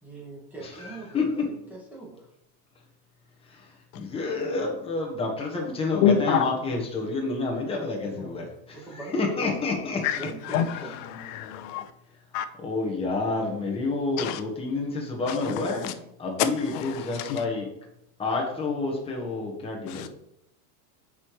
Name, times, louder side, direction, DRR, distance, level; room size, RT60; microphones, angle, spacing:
voice 1, 0.0-2.3 8.1-8.5 8.7-9.2 9.9-11.3, right 2 dB, 5° right, 1.9 m, -42 dB
voice 2, 0.6-1.3 3.4-10.0 12.6-17.7 18.2-20.1, left 3 dB, 10° left, 1.3 m, -29 dB
voice 3, 6.0-6.6 10.0-11.9 12.3-12.5 14.2-14.4 15.3-15.9 16.4-17.4 19.9-20.1, left 9 dB, 55° left, 0.7 m, -28 dB
7.3 x 5.0 x 3.1 m
supercardioid pair, 140°, 47 cm